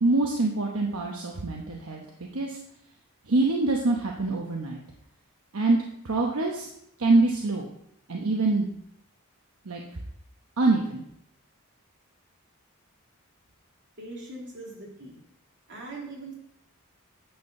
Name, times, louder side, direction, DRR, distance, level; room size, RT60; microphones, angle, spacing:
voice 1, 0.0-2.0 2.3-2.6 3.3-4.8 5.5-5.8 6.0-6.7 7.0-7.7 8.1-8.7 9.7-9.8 10.6-11.0, right 2 dB, 80° right, 0 dB, 1.0 m, -24 dB
voice 2, 14.0-15.2 15.7-16.3, right 2 dB, 60° right, -3 dB, 2.7 m, -41 dB
9.1 x 4.5 x 6.6 m, 0.73 s
head